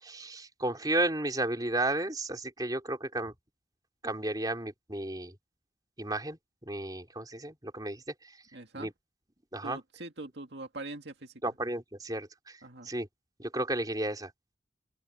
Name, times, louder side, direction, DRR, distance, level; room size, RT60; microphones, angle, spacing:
voice 1, 0.0-3.3 4.0-5.3 6.0-8.0 8.7-8.9 9.5-9.8 11.4-13.1 13.4-14.3, right 2 dB, 20° right, 4.4 m, -33 dB
voice 2, 8.5-8.9 9.6-11.3 12.6-12.9, right 2 dB, 65° right, 2.1 m, -42 dB
open air
head